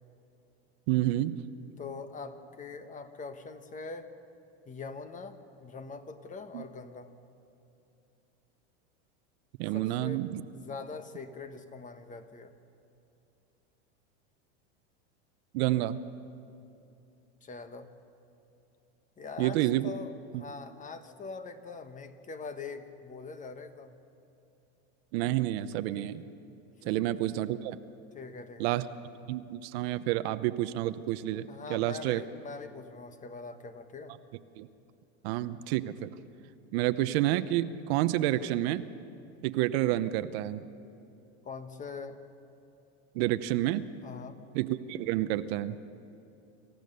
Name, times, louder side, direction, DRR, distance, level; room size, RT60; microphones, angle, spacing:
voice 1, 0.9-1.4 6.5-6.6 9.6-10.4 15.5-16.0 19.4-19.9 20.3-20.4 25.1-26.3 26.8-27.8 28.6-28.8 29.3-32.2 34.6-34.7 35.2-36.1 36.7-38.8 39.4-40.6 43.1-43.9 44.5-45.8, right 15 dB, 65° right, 12 dB, 0.9 m, -29 dB
voice 2, 1.8-4.1 4.6-7.1 9.7-10.2 10.5-12.6 17.4-17.9 19.2-24.0 26.8-26.9 28.1-28.9 31.5-34.2 41.4-42.2 44.0-44.4, left 4 dB, 25° left, 9 dB, 1.3 m, -43 dB
27.0 x 15.0 x 6.8 m, 2.8 s
supercardioid pair, 120°, 33 cm